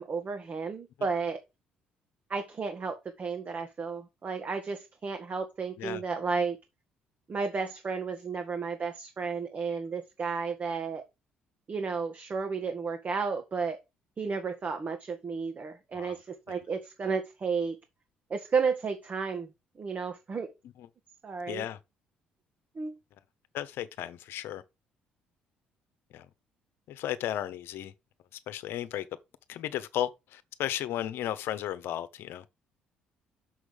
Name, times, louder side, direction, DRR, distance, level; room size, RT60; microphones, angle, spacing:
voice 1, 0.0-1.4 2.3-6.6 7.3-11.0 11.7-13.8 14.2-17.8 18.3-19.5 19.8-20.5 21.2-21.6 22.8-22.9, right 5 dB, 40° right, 1.6 m, -32 dB
voice 2, 21.5-21.8 23.5-24.6 26.1-26.3 26.9-27.9 28.5-29.0 29.5-32.4, left 12 dB, 70° left, 1.0 m, -34 dB
6.4 x 6.3 x 5.0 m
hypercardioid pair, 55°, 4 cm